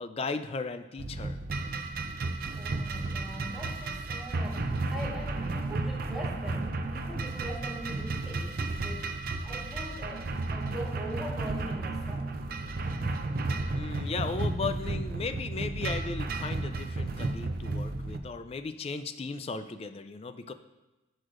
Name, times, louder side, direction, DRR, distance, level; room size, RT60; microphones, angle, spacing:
voice 1, 0.0-1.4 13.7-20.5, left 4 dB, 30° left, 9 dB, 0.3 m, -36 dB
sound 1, 1.0-18.2, right 2 dB, 50° right, 0.5 m, -33 dB
voice 2, 2.5-12.3, equal, ahead, -5 dB, 1.3 m, -42 dB
10.5 x 6.3 x 2.5 m, 1.0 s
head